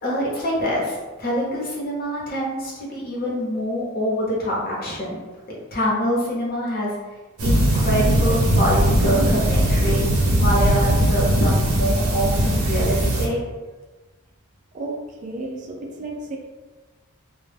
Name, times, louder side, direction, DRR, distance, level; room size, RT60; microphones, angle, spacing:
voice 1, 0.0-5.2 5.5-7.0 7.4-10.1 10.4-13.4, equal, 45° left, -4 dB, 0.7 m, -25 dB
sound 1, 7.4-13.3, right 1 dB, 75° right, 0.6 m, -19 dB
voice 2, 14.7-16.4, right 2 dB, 35° right, 0 dB, 0.3 m, -32 dB
2.1 x 2.1 x 3.2 m, 1.2 s
head